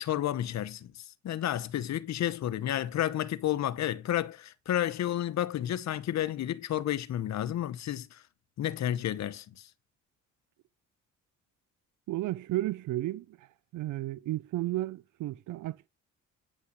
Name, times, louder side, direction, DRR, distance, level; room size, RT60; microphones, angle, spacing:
voice 1, 0.0-8.2 8.6-9.4, left 12 dB, 65° left, 0.9 m, -31 dB
voice 2, 12.1-13.5 13.7-15.9, right 15 dB, 80° right, 0.6 m, -33 dB
9.3 x 5.7 x 8.1 m
cardioid pair, 90°, 30 cm